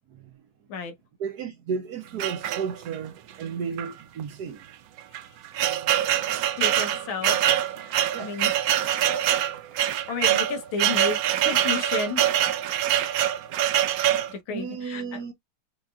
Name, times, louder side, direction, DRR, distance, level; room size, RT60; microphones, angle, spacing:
voice 1, 1.2-4.6 8.1-8.5 14.5-15.3, right 6 dB, 65° right, 1.1 m, -33 dB
sound 1, 2.2-3.1 3.8-3.9 4.2-4.3 5.0-14.3, right 11 dB, 85° right, 0.8 m, -24 dB
voice 2, 6.6-7.4 7.8-8.5 9.8-12.2 14.3-15.2, left 5 dB, 75° left, 1.8 m, -32 dB
6.3 x 2.9 x 2.3 m
omnidirectional pair, 2.2 m